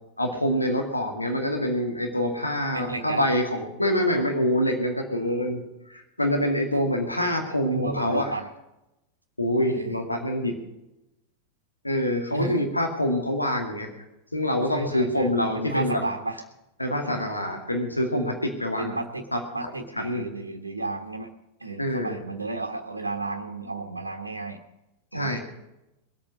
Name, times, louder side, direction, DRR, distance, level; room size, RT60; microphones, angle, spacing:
voice 1, 0.2-5.6 5.9-8.3 9.4-10.5 11.8-13.9 14.3-16.0 16.8-19.0 19.3-19.4 20.0-20.3 21.8-22.1 25.1-25.4, equal, 85° left, 2 dB, 2.3 m, -25 dB
voice 2, 2.7-3.2 7.7-8.5 9.7-10.0 12.3-12.6 14.7-16.4 17.0-17.3 18.8-19.2 19.5-21.3 21.6-24.6 25.1-25.3, right 2 dB, 80° right, 3 dB, 1.2 m, -33 dB
21.0 x 8.7 x 6.4 m, 0.92 s
figure-of-eight pair, 90°, 0 cm